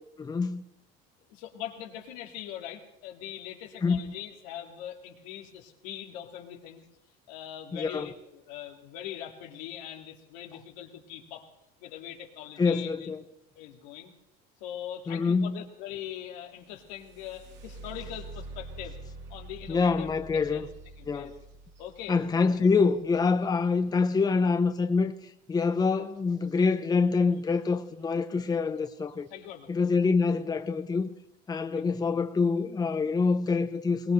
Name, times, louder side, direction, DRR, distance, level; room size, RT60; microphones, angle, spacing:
voice 1, 0.2-0.6 3.8-4.0 7.7-8.1 12.6-13.2 15.1-15.6 19.7-20.7 21.1-21.4 22.1-25.1 25.5-29.3 29.7-31.1 31.5-34.1, left 4 dB, 20° left, 0.9 m, -26 dB
voice 2, 1.3-6.8 7.3-11.5 11.8-13.1 13.5-14.1 14.6-19.0 19.3-20.7 21.0-21.3 21.8-22.7 29.3-29.7 31.7-32.2, left 10 dB, 85° left, 2.3 m, -42 dB
sound 1, 16.5-24.3 26.4-26.6 27.0-27.6 28.2-28.3 28.8-29.1, right 2 dB, 60° right, 2.8 m, -46 dB
21.5 x 19.0 x 3.3 m
supercardioid pair, 110°, 21 cm